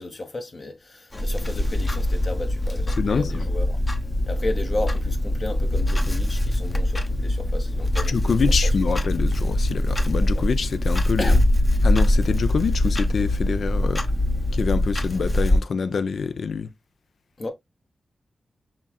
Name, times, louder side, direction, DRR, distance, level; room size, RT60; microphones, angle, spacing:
voice 1, 0.0-3.8 4.3-8.4 11.2-11.4 17.4-17.5, left 2 dB, 50° left, 1.2 m, -33 dB
Clock, 1.1-15.6, left 1 dB, 30° left, 0.8 m, -23 dB
voice 2, 3.0-3.5 8.1-11.4 11.8-14.0 14.5-16.7, left 5 dB, 75° left, 0.4 m, -26 dB
5.6 x 3.7 x 2.3 m
cardioid pair, 65°, 0 cm